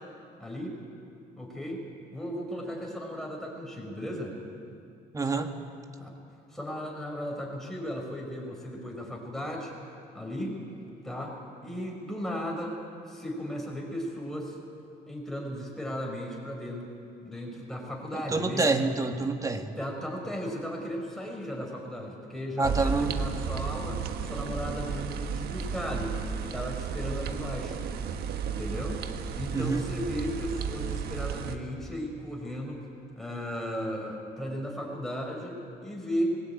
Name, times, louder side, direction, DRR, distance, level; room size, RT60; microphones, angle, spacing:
voice 1, 0.4-0.8 1.4-1.8 2.1-4.4 6.0-6.1 6.5-9.7 10.1-10.6 11.0-11.4 11.6-12.8 13.1-14.6 15.1-16.9 17.2-18.6 19.8-27.8 28.4-29.0 29.4-32.9 33.2-36.4, equal, ahead, -1 dB, 5.5 m, -35 dB
voice 2, 5.1-5.5 18.1-19.7 22.6-23.1 29.5-29.8, right 3 dB, 20° right, 6 dB, 1.7 m, -27 dB
sound 1, 22.6-31.6, right 6 dB, 70° right, 1.3 m, -33 dB
21.0 x 17.0 x 9.1 m, 2.6 s
cardioid pair, 110°, 17 cm